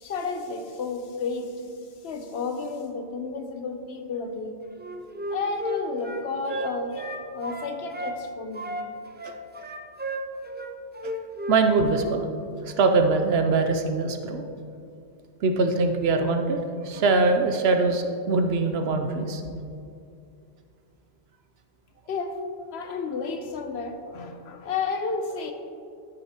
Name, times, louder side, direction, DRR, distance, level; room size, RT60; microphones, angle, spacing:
voice 1, 0.0-1.7 2.0-4.6 5.3-7.0 7.3-8.8 22.1-22.4 22.7-25.5, left 4 dB, 75° left, 7 dB, 1.0 m, -32 dB
Wind instrument woodwind instrument, 4.8-8.2 8.5-11.6 11.9-12.1, equal, 15° right, 0.3 m, -33 dB
voice 2, 11.5-12.2 12.6-14.4 15.4-16.6 16.8-19.4, right 3 dB, 70° right, 6 dB, 0.8 m, -22 dB
13.0 x 6.4 x 2.9 m, 2.5 s
omnidirectional pair, 1.1 m